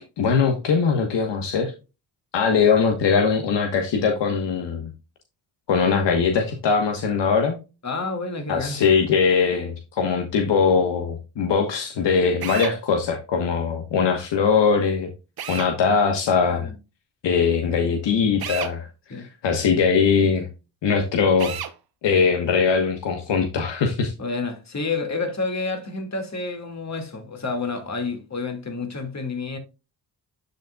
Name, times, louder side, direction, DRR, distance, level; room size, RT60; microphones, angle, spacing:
voice 1, 0.2-1.7 2.3-4.9 5.7-7.6 8.5-15.1 15.5-16.7 17.2-20.5 20.8-21.6 22.0-24.1, left 5 dB, 70° left, 1.3 m, -21 dB
voice 2, 7.8-8.8 16.4-16.7 19.1-19.3 24.2-29.6, left 3 dB, 35° left, 2.2 m, -29 dB
Drill, 12.4-12.8 15.4-15.7 18.4-18.7 21.4-21.7, right 9 dB, 55° right, 0.9 m, -31 dB
12.0 x 4.0 x 2.3 m
supercardioid pair, 60°, 45 cm